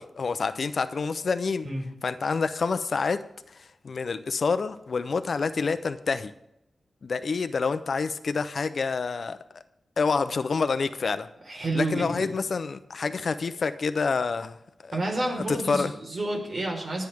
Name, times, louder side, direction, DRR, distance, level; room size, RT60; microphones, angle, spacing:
voice 1, 0.0-1.7 2.0-3.2 3.8-6.3 7.0-9.6 10.0-11.3 11.7-14.6 14.8-14.9 15.5-15.9, left 4 dB, 65° left, 11 dB, 0.8 m, -27 dB
voice 2, 11.5-12.3 14.9-17.1, right 2 dB, 60° right, -1 dB, 4.7 m, -29 dB
26.5 x 9.2 x 3.7 m, 0.83 s
wide cardioid pair, 90°, 0 cm